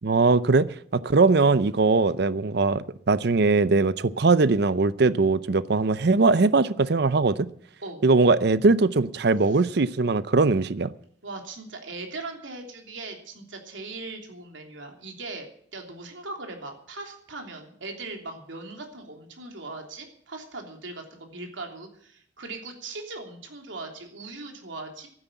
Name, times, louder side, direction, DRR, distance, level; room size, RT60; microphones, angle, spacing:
voice 1, 0.0-7.5 8.0-10.9, right 3 dB, 60° right, 0.6 m, -21 dB
voice 2, 11.2-25.1, right 3 dB, 85° right, 3.2 m, -39 dB
12.0 x 9.9 x 9.0 m
head